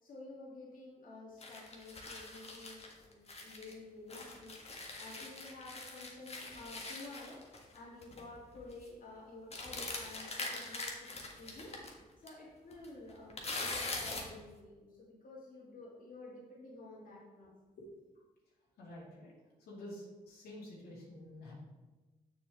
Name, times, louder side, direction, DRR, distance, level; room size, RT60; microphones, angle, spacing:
voice 1, 0.0-4.6 5.0-7.4 7.7-11.7 12.2-17.5, left 2 dB, 60° left, -5 dB, 2.2 m, -51 dB
sound 1, 1.4-3.7 4.1-8.2 8.5-8.9 9.5-11.9 12.3-12.4 12.7-14.3, left 2 dB, 40° left, 1.6 m, -43 dB
voice 2, 18.8-19.3 19.6-21.5, left 1 dB, 80° left, -6 dB, 2.3 m, -49 dB
7.0 x 6.0 x 3.5 m, 1.2 s
cardioid pair, 65°, 16 cm